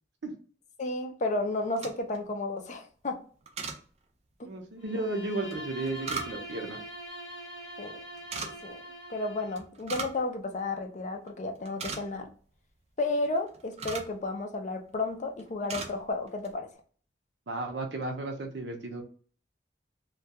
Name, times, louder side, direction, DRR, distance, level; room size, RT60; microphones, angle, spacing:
voice 1, 0.8-3.2 4.4-4.5 7.8-8.0 8.4-8.8 9.1-12.3 13.0-16.7, left 2 dB, 40° left, 0.4 m, -32 dB
sound 1, 1.6-2.2 3.5-3.8 5.5-6.6 8.2-8.5 9.6-10.2 10.5-10.6 11.1-11.3 11.6-12.3 13.2-14.2 14.9-15.1 15.4-15.9 16.3-16.5, right 4 dB, 35° right, 0.4 m, -38 dB
voice 2, 4.4-6.8 17.5-19.0, right 2 dB, 85° right, 0.6 m, -34 dB
Bowed string instrument, 4.8-9.7, right 1 dB, 25° left, 1.1 m, -43 dB
2.3 x 2.2 x 2.7 m
head